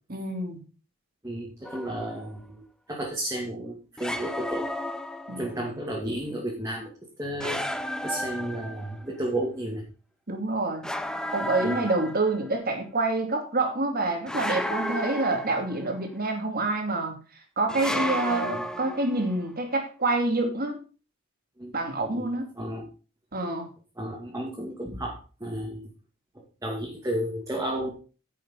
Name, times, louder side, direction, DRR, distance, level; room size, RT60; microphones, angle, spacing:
voice 1, 0.1-0.6 5.3-5.7 10.3-10.9 11.3-17.2 17.6-20.8 21.7-22.5 23.3-23.7, right 2 dB, 45° right, 4 dB, 2.5 m, -27 dB
voice 2, 1.2-4.7 5.4-6.9 7.2-7.6 8.0-9.8 11.6-11.8 18.4-18.6 21.6-21.8 22.1-22.3 22.6-22.9 24.0-25.9 26.3-27.9, right 1 dB, 15° right, -2 dB, 2.3 m, -33 dB
sound 1, 1.6-2.2 4.0-5.6 7.4-9.1 10.8-12.5 14.3-16.0 17.7-19.3, equal, 5° left, 0.7 m, -33 dB
10.5 x 6.5 x 5.6 m, 0.36 s
head